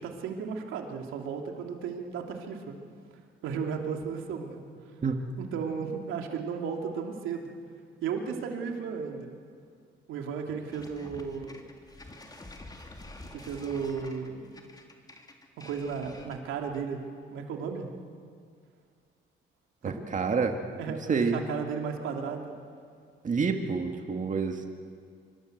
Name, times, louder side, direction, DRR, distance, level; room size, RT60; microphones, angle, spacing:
voice 1, 0.0-2.8 3.4-4.6 5.4-7.5 8.0-9.3 10.1-11.6 13.3-14.5 15.6-17.0 17.3-17.9 19.8-20.1 20.8-22.5, right 6 dB, 90° right, 2 dB, 2.9 m, -34 dB
sound 1, 10.7-17.0, left 2 dB, 20° left, 3.1 m, -48 dB
voice 2, 19.8-20.6 20.9-21.4 23.2-24.8, right 5 dB, 40° right, 4 dB, 2.1 m, -28 dB
25.5 x 25.5 x 8.1 m, 2.2 s
cardioid pair, 90°, 20 cm